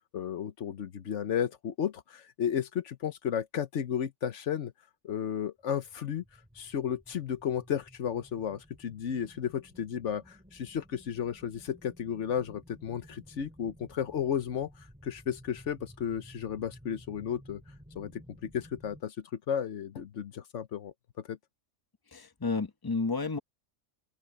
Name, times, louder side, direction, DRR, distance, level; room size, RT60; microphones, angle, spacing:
voice 1, 0.1-4.7 5.0-6.2 6.5-17.6 17.9-20.9 21.3-21.4, left 8 dB, 75° left, 1.2 m, -33 dB
sound 1, 5.8-19.0, equal, 5° right, 4.2 m, -55 dB
voice 2, 22.1-23.4, left 4 dB, 20° left, 1.1 m, -31 dB
open air
omnidirectional pair, 1.2 m